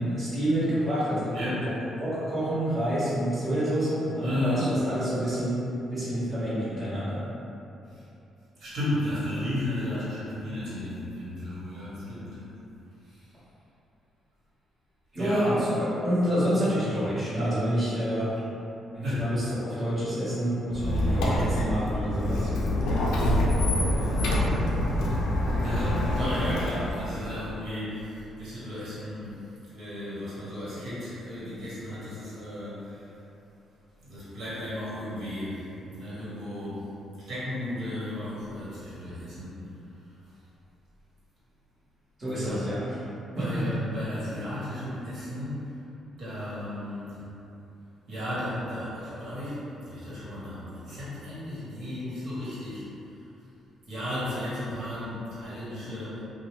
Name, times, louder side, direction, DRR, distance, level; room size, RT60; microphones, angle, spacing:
voice 1, 0.0-1.7 2.0-5.6 5.9-7.2 15.1-18.4 18.9-22.5 42.2-43.0 43.3-43.6, equal, 30° right, -11 dB, 1.3 m, -28 dB
voice 2, 4.2-4.7 7.9-8.0 8.6-12.4 13.1-13.3 15.2-15.6 19.0-19.3 25.6-29.4 29.7-33.1 34.0-35.6 35.9-36.8 37.3-39.5 42.3-42.6 43.4-45.7 46.2-47.2 48.1-52.8 53.9-56.2, left 1 dB, 65° right, -10 dB, 1.3 m, -34 dB
Squeak, 20.7-27.1, left 1 dB, 90° left, 0.4 m, -26 dB
2.8 x 2.2 x 3.1 m, 2.8 s
cardioid pair, 90°, 0 cm